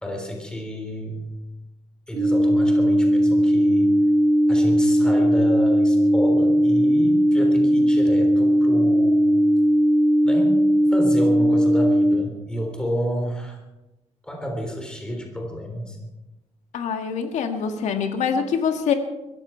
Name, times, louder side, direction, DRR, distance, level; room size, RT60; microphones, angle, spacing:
voice 1, 0.0-1.2 2.1-3.9 4.5-9.2 10.2-10.6 10.9-13.6 14.2-16.0, equal, 5° left, 2 dB, 3.6 m, -30 dB
sound 1, 2.1-12.1, equal, 25° right, 2.7 m, -18 dB
voice 2, 16.7-18.9, left 6 dB, 80° left, 5 dB, 1.8 m, -24 dB
22.5 x 14.5 x 4.5 m, 1.0 s
cardioid pair, 135°, 12 cm